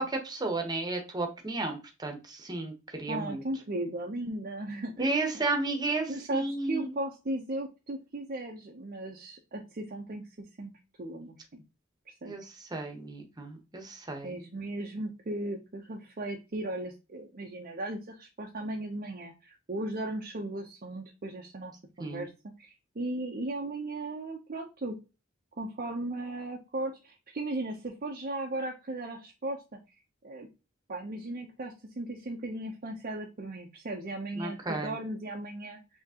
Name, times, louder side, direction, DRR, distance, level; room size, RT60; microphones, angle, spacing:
voice 1, 0.0-3.4 5.0-6.9 12.2-14.4 22.0-22.3 34.3-35.0, right 2 dB, 20° right, 3 dB, 1.0 m, -33 dB
voice 2, 3.1-5.2 6.1-10.2 10.6-10.7 11.0-11.6 12.2-12.3 14.2-21.7 22.0-25.0 25.6-29.6 30.2-30.5 30.9-35.8, right 2 dB, 45° right, 0 dB, 0.7 m, -36 dB
5.8 x 2.9 x 2.8 m, 0.29 s
head